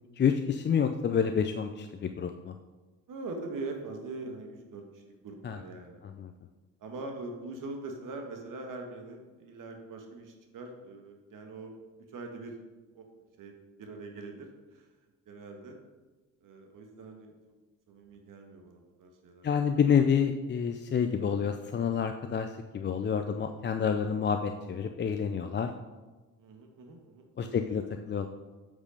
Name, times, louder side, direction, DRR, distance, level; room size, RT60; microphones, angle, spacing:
voice 1, 0.2-2.5 5.4-5.6 6.0-6.3 19.4-25.7 27.4-28.3, left 7 dB, 30° left, 6 dB, 0.5 m, -28 dB
voice 2, 3.1-6.0 6.8-11.7 12.1-12.5 12.9-13.1 13.4-14.9 15.3-15.8 16.4-17.3 17.9-19.7 26.4-27.8, right 3 dB, 50° right, 3 dB, 1.5 m, -43 dB
8.1 x 5.4 x 5.3 m, 1.2 s
hypercardioid pair, 55°, 40 cm